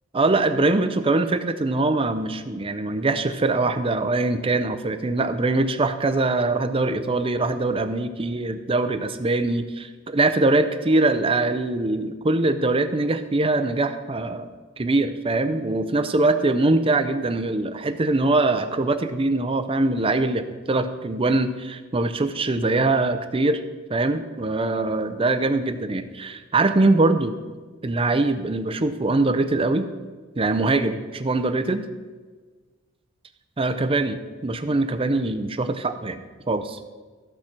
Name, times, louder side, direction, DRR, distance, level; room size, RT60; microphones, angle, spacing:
voice 1, 0.1-14.5 14.8-23.6 23.9-27.4 27.8-29.9 30.3-31.9 33.6-36.8, right 2 dB, 25° right, 8 dB, 0.6 m, -23 dB
14.5 x 5.9 x 4.4 m, 1.4 s
head